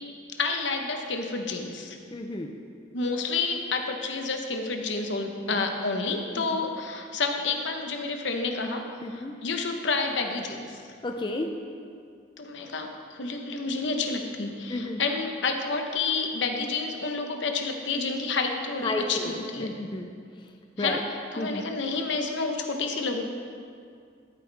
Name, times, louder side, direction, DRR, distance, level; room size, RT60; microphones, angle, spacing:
voice 1, 0.4-2.0 2.9-10.8 12.4-19.8 20.8-21.0 21.3-23.2, left 4 dB, 70° left, 4 dB, 1.0 m, -29 dB
voice 2, 2.1-2.5 5.4-5.5 6.4-6.5 9.0-9.3 11.0-11.5 14.7-15.0 18.8-19.3 19.6-20.1 20.8-21.0 21.4-21.6, left 2 dB, 25° left, 3 dB, 0.5 m, -31 dB
13.5 x 8.4 x 3.4 m, 2.3 s
head